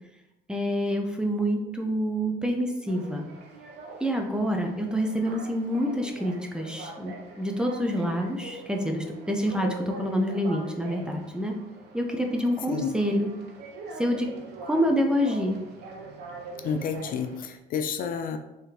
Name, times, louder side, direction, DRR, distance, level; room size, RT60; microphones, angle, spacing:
voice 1, 0.5-3.2 4.0-11.5 11.9-13.3 14.0-14.3 14.6-15.6, equal, 5° right, 2 dB, 0.5 m, -27 dB
sound 1, 2.9-17.4, right 3 dB, 80° right, 0.7 m, -43 dB
voice 2, 16.6-18.4, left 6 dB, 55° left, 7 dB, 0.4 m, -30 dB
3.5 x 3.5 x 2.8 m, 0.91 s
cardioid pair, 110°, 17 cm